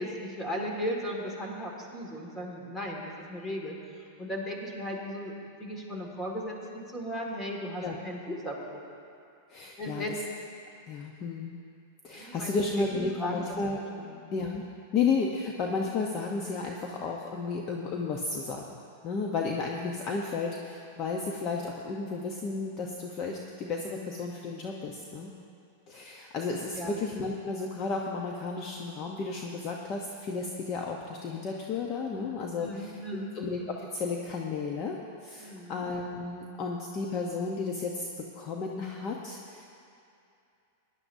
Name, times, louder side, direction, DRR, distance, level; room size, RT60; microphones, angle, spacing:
voice 1, 0.0-3.7 4.2-5.3 5.6-8.8 9.8-10.2 12.1-13.4 14.0-14.2 26.7-27.0 32.2-33.3 35.4-35.8, equal, 10° left, -1 dB, 1.9 m, -36 dB
voice 2, 9.5-10.0 10.9-11.6 12.0-13.8 14.3-14.6 14.9-18.7 19.0-25.3 25.9-32.9 33.3-35.0 35.2-38.1 38.3-39.7, left 4 dB, 35° left, 0 dB, 0.8 m, -33 dB
18.5 x 10.5 x 2.7 m, 2.5 s
supercardioid pair, 140°, 0 cm